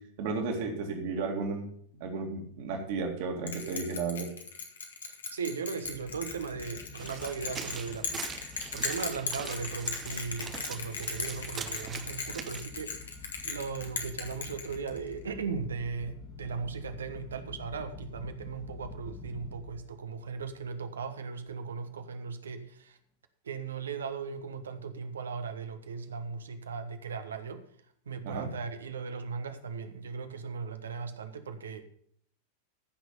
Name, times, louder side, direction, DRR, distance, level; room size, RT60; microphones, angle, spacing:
voice 1, 0.2-1.7 2.0-4.3 28.2-28.5, right 4 dB, 50° right, 3 dB, 2.4 m, -33 dB
Bell, 3.5-15.1, left 5 dB, 70° left, 1.9 m, -38 dB
voice 2, 5.0-8.2 8.7-13.2 13.4-23.0 23.4-27.7 28.0-31.8, right 5 dB, 70° right, 8 dB, 1.2 m, -37 dB
sound 1, 5.8-20.0 20.3-20.7 21.1-21.2 21.5-21.6, left 4 dB, 15° left, 1.8 m, -48 dB
sound 2, 7.0-12.7, right 6 dB, 25° right, 1.0 m, -43 dB
14.5 x 6.2 x 5.4 m, 0.63 s
figure-of-eight pair, 90°, 0 cm